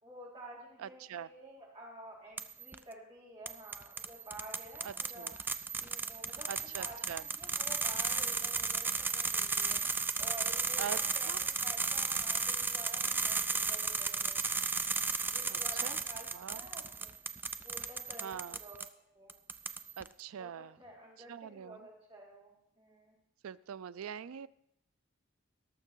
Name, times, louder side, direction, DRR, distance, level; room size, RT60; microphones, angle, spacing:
voice 1, 0.0-5.3 5.8-6.5 6.8-9.8 10.2-14.4 15.2-17.1 17.6-19.4 20.4-23.2, right 1 dB, 25° right, -5 dB, 4.2 m, -51 dB
voice 2, 0.8-1.3 4.8-5.3 6.5-7.2 10.8-11.0 11.3-11.4 15.5-16.0 16.3-16.6 18.2-18.6 20.0-20.7 21.3-21.8 23.4-24.5, right 8 dB, 90° right, 18 dB, 0.4 m, -43 dB
sound 1, 2.4-2.8 3.5-18.9 19.3-20.1, right 4 dB, 10° right, 0.3 m, -34 dB
18.0 x 6.7 x 4.6 m, 0.78 s
head